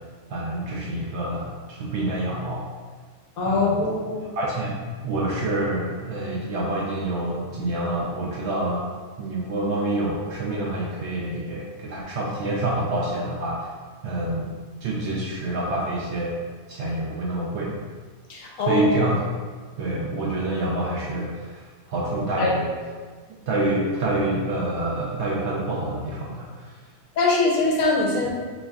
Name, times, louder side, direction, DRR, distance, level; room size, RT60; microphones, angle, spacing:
voice 1, 0.3-2.6 3.4-3.8 4.4-4.8 5.0-8.9 9.2-13.7 14.0-14.5 14.8-16.4 16.7-17.7 18.6-19.2 19.8-22.7 23.5-26.8, right 1 dB, 65° right, -4 dB, 0.7 m, -27 dB
voice 2, 3.4-4.2 18.3-18.9 22.4-22.5 27.2-28.3, left 3 dB, 75° left, -2 dB, 1.1 m, -22 dB
4.2 x 3.0 x 2.3 m, 1.5 s
omnidirectional pair, 1.5 m